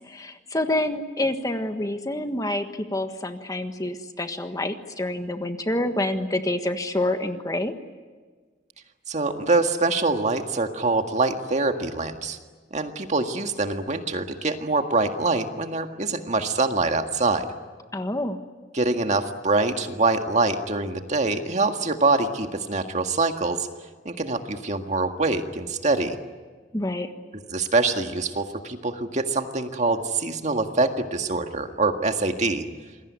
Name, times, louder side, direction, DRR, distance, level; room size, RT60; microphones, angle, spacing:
voice 1, 0.1-7.7 17.9-18.4 26.7-27.1, left 1 dB, 20° left, 7 dB, 1.5 m, -27 dB
voice 2, 9.1-12.4 12.7-17.5 18.7-23.7 24.1-26.2 27.5-32.7, right 3 dB, 40° right, 5 dB, 1.8 m, -24 dB
27.5 x 21.5 x 9.6 m, 1.4 s
head